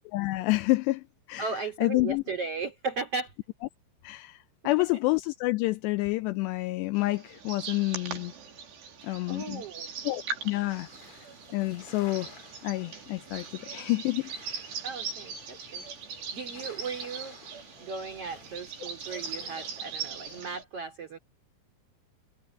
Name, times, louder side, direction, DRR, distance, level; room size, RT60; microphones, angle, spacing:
voice 1, 0.1-1.5 1.8-2.2 4.0-8.3 9.0-9.6 10.0-10.9 11.5-14.3, left 21 dB, 85° left, 2.5 m, -28 dB
voice 2, 1.4-3.3 9.0-9.9 14.8-17.4 17.8-21.2, right 4 dB, 35° right, 3.2 m, -36 dB
sound 1, 7.0-20.6, right 6 dB, 65° right, 6.1 m, -40 dB
sound 2, 10.7-20.4, left 4 dB, 35° left, 3.5 m, -54 dB
omnidirectional pair, 5.4 m